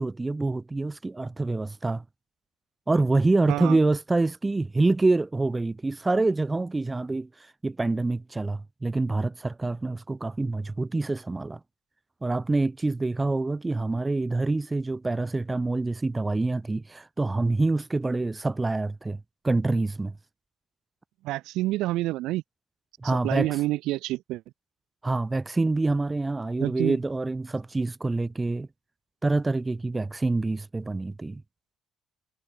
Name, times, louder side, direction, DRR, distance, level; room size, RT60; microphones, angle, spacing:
voice 1, 0.0-2.0 2.9-7.3 7.6-11.6 12.2-19.2 19.4-20.1 23.0-23.5 25.0-28.7 29.2-31.4, right 2 dB, 15° right, 0.4 m, -26 dB
voice 2, 3.5-3.8 21.2-22.4 23.0-24.4 26.6-27.0, right 17 dB, 90° right, 0.7 m, -28 dB
cardioid pair, 130°, 0 cm